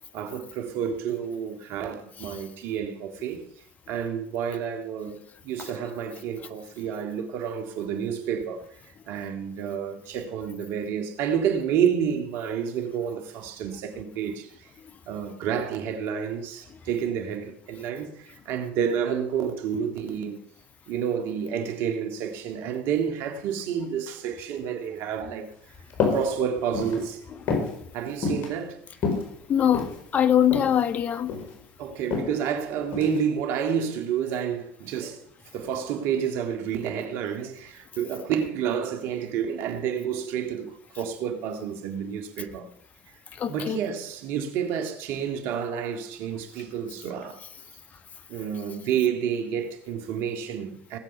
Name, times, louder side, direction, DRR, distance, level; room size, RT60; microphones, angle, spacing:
voice 1, 0.1-3.4 3.9-5.2 5.4-8.7 9.1-14.5 15.1-20.4 20.9-25.5 26.1-27.2 27.9-28.8 31.8-35.2 35.5-42.7 43.5-47.4 48.3-51.0, right 8 dB, 65° right, 2.2 m, -29 dB
sound 1, 25.9-26.3 26.6-27.0 27.5-27.7 28.2-28.5 28.9-30.0 30.5-30.7 31.1-31.6 32.1-32.3 32.9-33.2, left 5 dB, 55° left, 4.6 m, -27 dB
voice 2, 29.5-31.3 43.4-43.8, left 9 dB, 40° left, 1.4 m, -22 dB
19.0 x 7.8 x 5.6 m
hypercardioid pair, 80°, 4 cm